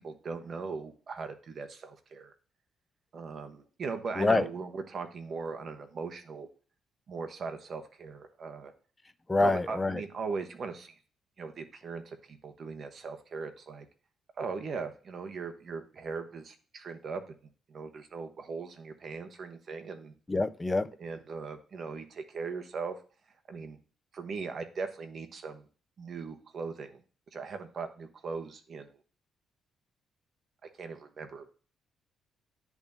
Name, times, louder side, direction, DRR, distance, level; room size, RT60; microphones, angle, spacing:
voice 1, 0.0-2.3 3.1-6.5 7.1-8.7 9.4-11.0 11.4-13.9 14.4-17.3 17.7-20.1 21.0-23.0 23.5-23.8 24.1-25.6 26.0-27.0 27.3-29.0 30.6-31.5, right 4 dB, 50° right, 1.1 m, -39 dB
voice 2, 4.2-4.5 9.3-10.0 20.3-20.9, left 3 dB, 15° left, 0.5 m, -26 dB
10.5 x 3.6 x 2.7 m
cardioid pair, 90°, 0 cm